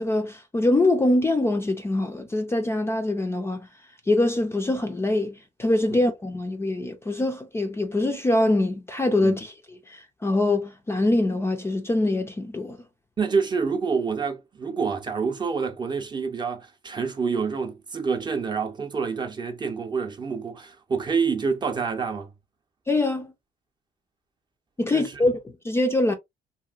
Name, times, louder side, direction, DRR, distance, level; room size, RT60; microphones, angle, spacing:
voice 1, 0.0-3.7 4.1-12.8 22.9-23.3 24.8-26.1, left 2 dB, 15° left, 0.5 m, -24 dB
voice 2, 13.2-22.3 24.9-25.1, right 5 dB, 25° right, 0.7 m, -27 dB
2.9 x 2.6 x 2.3 m
cardioid pair, 110°, 17 cm